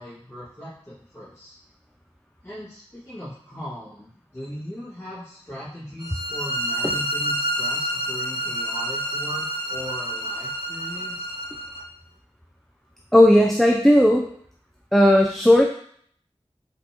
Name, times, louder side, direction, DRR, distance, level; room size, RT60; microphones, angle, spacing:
voice 1, 0.0-1.6 2.4-11.3, equal, 25° left, -13 dB, 2.0 m, -38 dB
sound 1, 6.0-11.8, right 1 dB, 40° right, 1.2 m, -28 dB
voice 2, 13.1-14.3 14.9-15.6, left 1 dB, ahead, 1 dB, 0.4 m, -15 dB
4.4 x 4.1 x 2.9 m, 0.62 s
wide cardioid pair, 55°, 11 cm